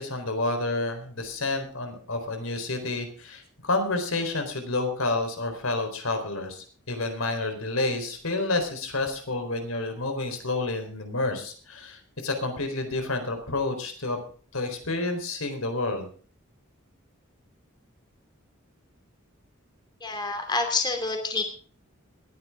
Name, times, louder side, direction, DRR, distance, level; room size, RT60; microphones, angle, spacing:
voice 1, 0.0-14.2 14.5-16.1, left 2 dB, 85° left, 6 dB, 4.1 m, -29 dB
voice 2, 20.0-21.4, left 3 dB, 20° left, 5 dB, 2.8 m, -27 dB
20.5 x 10.5 x 3.7 m, 0.43 s
head